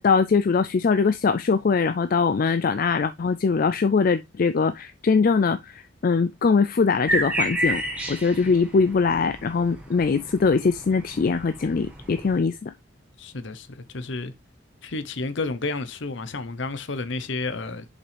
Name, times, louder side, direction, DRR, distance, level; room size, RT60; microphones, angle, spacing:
voice 1, 0.0-7.8 8.1-12.7, left 5 dB, 45° left, 0.4 m, -22 dB
sound 1, 7.1-12.4, right 1 dB, 5° right, 1.5 m, -31 dB
voice 2, 13.2-14.3 14.8-17.9, left 3 dB, 60° left, 0.8 m, -31 dB
6.9 x 5.4 x 3.3 m
head